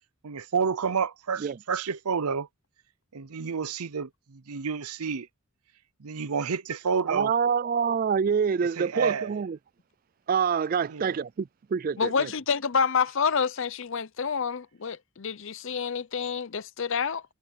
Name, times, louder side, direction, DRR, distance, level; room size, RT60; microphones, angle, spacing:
voice 1, 0.2-2.5 3.1-5.3 6.0-7.3 8.8-9.3 10.9-11.2, right 6 dB, 85° right, 0.7 m, -29 dB
voice 2, 7.1-9.6 10.3-12.3, right 6 dB, 40° right, 0.3 m, -26 dB
voice 3, 12.0-17.2, left 6 dB, 60° left, 0.7 m, -28 dB
head